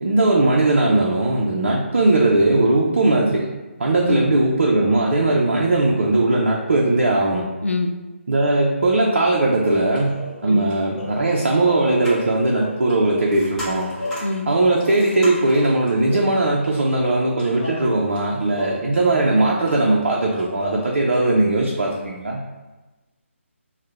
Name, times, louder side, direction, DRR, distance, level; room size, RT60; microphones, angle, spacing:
voice 1, 0.0-3.5 3.8-7.5 8.3-13.9 14.5-22.4, right 2 dB, 55° right, -2 dB, 0.4 m, -19 dB
voice 2, 4.0-4.4 7.6-8.0 10.4-10.7 14.2-14.5, left 3 dB, 70° left, 6 dB, 0.3 m, -25 dB
sound 1, 9.6-13.7 14.0-15.2 15.5-16.7 17.0-19.4 19.7-19.8 20.0-21.2, left 1 dB, 40° left, 1.1 m, -34 dB
sound 2, 11.6-15.8, equal, 5° left, 0.4 m, -36 dB
2.6 x 2.0 x 3.3 m, 1.1 s
figure-of-eight pair, 145°, 7 cm